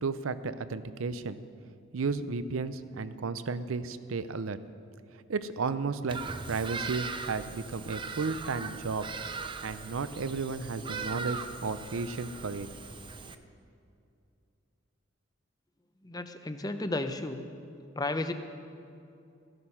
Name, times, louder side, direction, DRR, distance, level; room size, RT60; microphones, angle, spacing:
voice 1, 0.0-1.4 1.9-4.6 5.3-6.2 6.5-9.0 9.6-12.7, right 4 dB, 85° right, 13 dB, 0.6 m, -33 dB
Bird vocalization bird call bird song, 6.1-13.4, right 4 dB, 25° right, 0.5 m, -40 dB
voice 2, 16.0-17.4 17.9-18.3, left 2 dB, 20° left, 8 dB, 0.6 m, -33 dB
14.5 x 11.0 x 5.6 m, 2.5 s
head